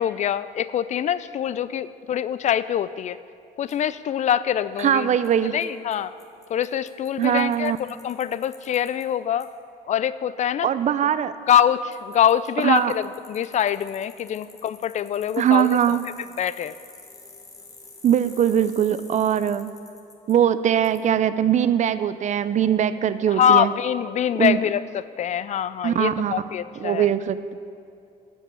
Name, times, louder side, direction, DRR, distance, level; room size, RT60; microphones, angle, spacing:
voice 1, 0.0-3.2 3.6-5.1 5.5-6.1 6.5-7.7 8.0-9.5 9.8-10.7 11.5-15.8 16.4-16.7 23.3-27.1, left 9 dB, 45° left, 16 dB, 0.4 m, -24 dB
Bicycle, 3.7-3.8 4.8-4.9 5.2-5.3 5.6-5.7 5.9-6.0 6.2-9.0 9.4-9.5 11.5-11.6 11.9-20.3 20.8-21.0, left 3 dB, 20° left, 1.5 m, -48 dB
voice 2, 4.8-5.6 7.2-7.8 10.6-11.3 12.6-12.9 15.4-16.0 18.0-19.7 20.3-23.7 24.4-24.6 25.8-26.3 26.8-27.5, right 9 dB, 45° right, 14 dB, 0.5 m, -21 dB
13.0 x 5.4 x 8.6 m, 2.6 s
cardioid pair, 110°, 17 cm